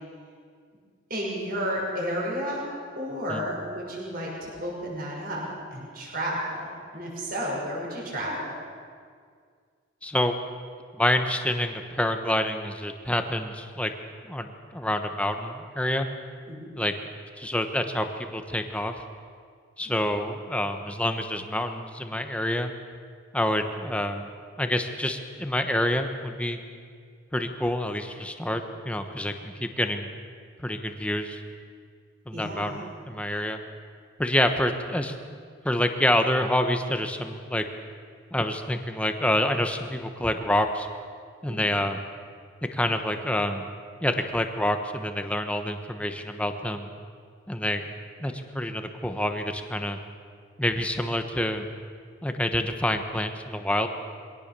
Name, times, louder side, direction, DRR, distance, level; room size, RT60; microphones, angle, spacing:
voice 1, 1.1-2.7 3.0-8.5 16.4-16.7 19.8-20.1 32.3-32.8 41.4-41.7, equal, 45° right, -3 dB, 6.4 m, -32 dB
voice 2, 10.0-10.4 10.9-13.9 14.3-16.1 16.7-16.9 17.4-18.1 18.3-18.9 19.8-22.7 23.3-24.3 24.6-26.6 27.3-30.1 30.6-31.4 32.3-33.6 34.2-35.1 35.6-37.7 38.3-40.9 41.4-42.0 42.7-43.7 44.0-46.9 47.5-47.8 48.2-50.0 50.6-51.6 52.2-53.9, left 1 dB, 5° left, 6 dB, 1.1 m, -27 dB
23.0 x 17.5 x 6.9 m, 2.1 s
head